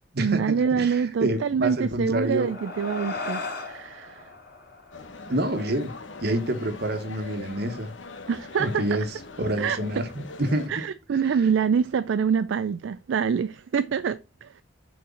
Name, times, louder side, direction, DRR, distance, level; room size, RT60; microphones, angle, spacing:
voice 1, 0.2-4.3 8.3-9.0 9.6-9.8 10.7-14.5, right 6 dB, 75° right, 0.4 m, -26 dB
voice 2, 0.7-2.5 5.3-7.9 8.6-9.0 9.4-10.1 10.4-10.8 11.3-11.4, right 1 dB, 55° right, 1.3 m, -27 dB
sound 1, 1.9-6.7, left 3 dB, 55° left, 2.2 m, -38 dB
sound 2, 4.9-10.7, left 3 dB, 80° left, 0.9 m, -41 dB
6.3 x 4.6 x 5.4 m
head